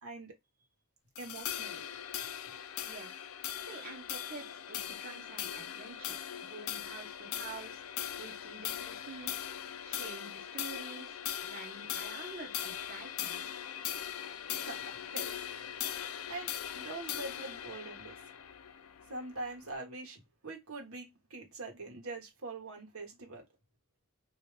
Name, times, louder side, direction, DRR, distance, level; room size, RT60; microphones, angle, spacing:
voice 1, 0.0-0.4 1.2-1.8 14.5-15.5 15.7-15.9 16.3-18.3 19.1-23.4, right 2 dB, 85° right, 1.5 m, -44 dB
sound 1, 1.2-19.8, left 10 dB, 75° left, 0.5 m, -40 dB
voice 2, 2.8-3.2 3.6-9.5 9.8-13.4, right 3 dB, 45° right, 1.0 m, -48 dB
3.3 x 3.0 x 3.3 m
head